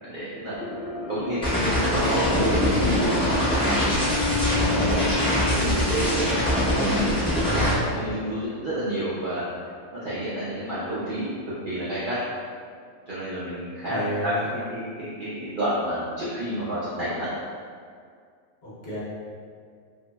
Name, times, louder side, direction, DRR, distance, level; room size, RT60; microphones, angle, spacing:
voice 1, 0.0-0.6 1.1-3.2 3.7-4.2 4.6-5.1 5.4-6.3 6.8-9.4 9.9-11.3 11.7-12.2 13.1-17.3, equal, 60° right, -11 dB, 0.5 m, -30 dB
sound 1, 0.5-12.8 13.1-13.2, left 2 dB, 85° left, 1.0 m, -41 dB
sound 2, 1.4-7.7, equal, 5° left, 0.5 m, -23 dB
Bowed string instrument, 3.4-8.1, left 6 dB, 20° right, 0.8 m, -32 dB
voice 2, 13.8-14.7 18.6-19.0, equal, 55° left, -9 dB, 0.8 m, -32 dB
2.8 x 2.7 x 2.2 m, 2.1 s
omnidirectional pair, 1.4 m